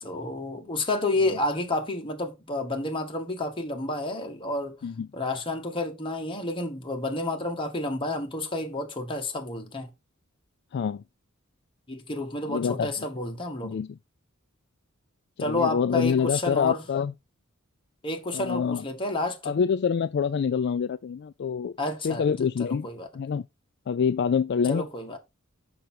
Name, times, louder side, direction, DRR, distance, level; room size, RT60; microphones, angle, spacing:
voice 1, 0.0-4.8 5.1-9.9 11.9-13.7 15.4-16.8 18.0-19.6 21.8-22.3 22.6-23.1 24.7-25.2, left 2 dB, 25° left, 1.7 m, -30 dB
voice 2, 10.7-11.0 12.5-12.9 13.6-14.0 15.4-17.1 18.3-18.8 19.5-21.8 22.0-22.9 23.1-23.4 23.9-24.9, left 6 dB, 55° left, 0.3 m, -26 dB
6.6 x 5.8 x 4.4 m
head